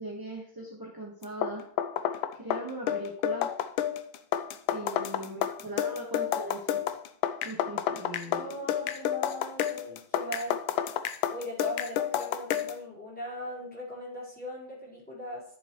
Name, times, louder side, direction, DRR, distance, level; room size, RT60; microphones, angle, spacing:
voice 1, 0.0-1.7 2.4-3.5 4.7-7.0 7.4-8.7, right 1 dB, 15° right, -3 dB, 0.9 m, -39 dB
sound 1, 1.2-12.8, left 10 dB, 80° left, 1.4 m, -30 dB
voice 2, 4.8-5.4 8.2-10.6 11.3-15.4, equal, 5° left, -6 dB, 3.8 m, -40 dB
12.5 x 7.0 x 3.0 m, 0.64 s
omnidirectional pair, 2.2 m